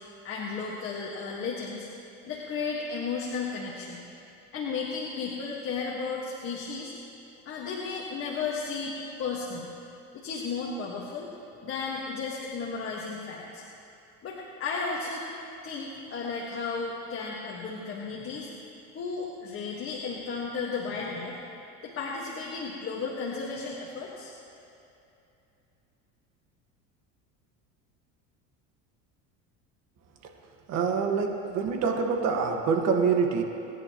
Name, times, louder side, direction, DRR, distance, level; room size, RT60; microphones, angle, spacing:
voice 1, 0.2-1.9 2.2-4.0 4.5-6.9 7.4-9.7 10.1-11.3 11.6-13.6 14.2-15.3 15.6-18.5 18.9-21.4 21.8-24.3, left 4 dB, 40° left, -4 dB, 1.7 m, -34 dB
voice 2, 30.7-33.4, right 5 dB, 55° right, 3 dB, 1.7 m, -25 dB
29.5 x 10.5 x 3.1 m, 2.7 s
cardioid pair, 130°, 32 cm